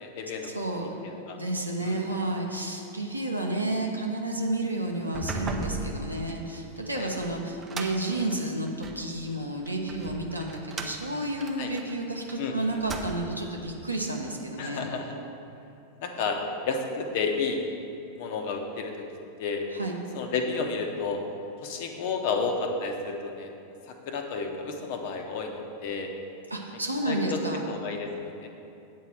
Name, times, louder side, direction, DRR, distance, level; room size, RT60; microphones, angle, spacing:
voice 1, 0.0-0.5 0.8-1.4 1.8-2.0 6.9-7.1 8.1-8.2 11.6-11.7 12.4-12.8 14.6-15.1 16.0-17.6 18.2-19.0 19.4-19.7 20.1-21.2 21.6-23.5 23.9-26.1 27.1-27.4 27.7-28.5, left 4 dB, 50° left, 3 dB, 1.0 m, -31 dB
voice 2, 0.5-1.0 1.3-14.8 19.7-20.0 26.5-27.6, right 1 dB, 85° right, 0 dB, 0.9 m, -31 dB
sound 1, 5.0-9.1 9.7-12.4 12.7-13.5, right 3 dB, 20° right, 0.7 m, -38 dB
8.6 x 4.6 x 7.4 m, 2.7 s
figure-of-eight pair, 90°, 0 cm